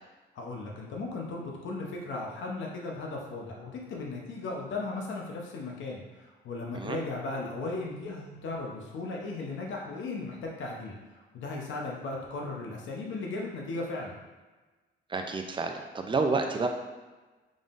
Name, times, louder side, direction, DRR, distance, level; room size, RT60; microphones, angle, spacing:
voice 1, 0.4-14.1, left 3 dB, 70° left, -1 dB, 0.9 m, -36 dB
voice 2, 15.1-16.7, right 3 dB, 25° right, 4 dB, 0.4 m, -29 dB
3.8 x 3.7 x 2.5 m, 1.2 s
cardioid pair, 90°, 20 cm